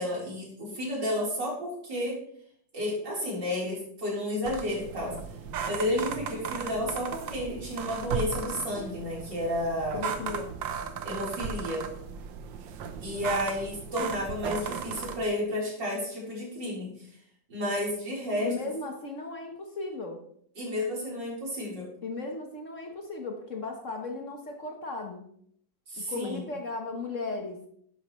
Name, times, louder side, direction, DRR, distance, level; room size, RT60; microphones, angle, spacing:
voice 1, 0.0-2.2 2.7-5.1 5.6-10.0 11.0-11.8 13.0-16.9 17.5-18.5 20.6-21.9 25.9-26.4, left 1 dB, 70° right, -4 dB, 4.8 m, -31 dB
sound 1, 4.4-15.2, right 6 dB, 90° right, 1.6 m, -36 dB
voice 2, 9.9-10.5 18.4-20.2 22.0-25.2 26.0-27.7, left 3 dB, 45° left, 3 dB, 1.5 m, -36 dB
11.5 x 10.5 x 3.2 m, 0.65 s
omnidirectional pair, 2.0 m